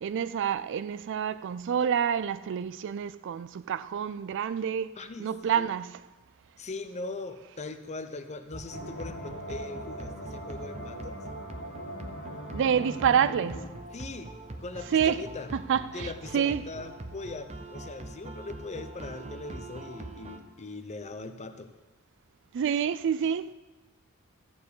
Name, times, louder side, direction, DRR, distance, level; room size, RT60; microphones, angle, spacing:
voice 1, 0.0-4.9 5.2-6.0 12.5-13.6 14.9-15.3 15.5-16.6 22.5-23.5, right 8 dB, 60° right, 0.3 m, -28 dB
voice 2, 5.0-5.7 6.6-11.1 13.9-14.3 14.6-15.5 15.9-21.7, left 3 dB, 30° left, 0.7 m, -40 dB
sound 1, 8.5-20.4, right 2 dB, 30° right, 0.8 m, -43 dB
sound 2, 8.7-13.7, equal, 65° left, 1.7 m, -41 dB
13.5 x 4.7 x 8.3 m
head